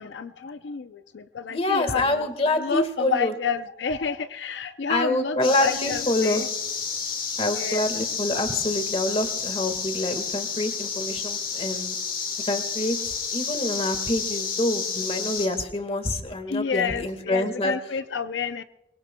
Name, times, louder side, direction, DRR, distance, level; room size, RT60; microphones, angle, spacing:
voice 1, 0.0-2.3 2.5-6.5 7.5-7.9 16.5-18.6, left 6 dB, 85° left, 10 dB, 0.5 m, -29 dB
voice 2, 1.5-3.3 4.9-6.4 7.4-12.0 12.5-17.7, left 1 dB, 35° left, 7 dB, 1.6 m, -26 dB
sound 1, 5.4-15.5, left 5 dB, 50° left, 2.8 m, -30 dB
24.5 x 22.0 x 2.2 m, 0.91 s
head